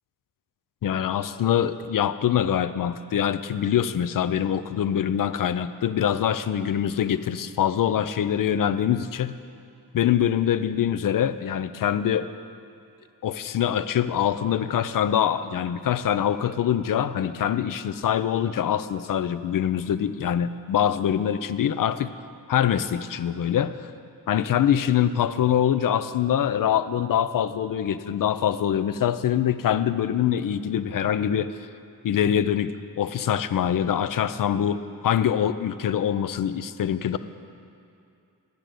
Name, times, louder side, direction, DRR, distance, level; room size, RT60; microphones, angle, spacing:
voice 1, 0.8-9.3 9.9-12.3 13.2-22.1 22.5-23.7 24.3-31.5 32.0-37.2, left 9 dB, 55° left, 13 dB, 0.5 m, -24 dB
10.0 x 5.1 x 7.6 m, 2.6 s
cardioid pair, 75°, 40 cm